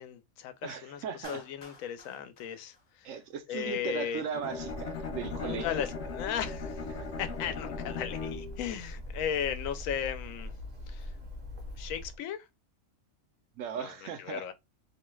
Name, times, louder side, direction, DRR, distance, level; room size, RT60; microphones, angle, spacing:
voice 1, 0.0-3.1 3.5-4.2 5.4-6.9 7.2-10.5 10.9-11.1 11.7-12.5 13.8-13.9 14.2-14.5, left 9 dB, 90° left, 1.0 m, -36 dB
voice 2, 0.6-1.4 3.0-5.7 13.6-14.5, right 7 dB, 75° right, 1.0 m, -37 dB
Clapping, 1.2-3.5, left 2 dB, 30° left, 0.7 m, -52 dB
Bowed string instrument, 4.3-8.7, left 5 dB, 60° left, 0.8 m, -39 dB
Bird, 4.5-12.2, equal, 50° right, 0.9 m, -42 dB
2.7 x 2.2 x 3.1 m
omnidirectional pair, 1.4 m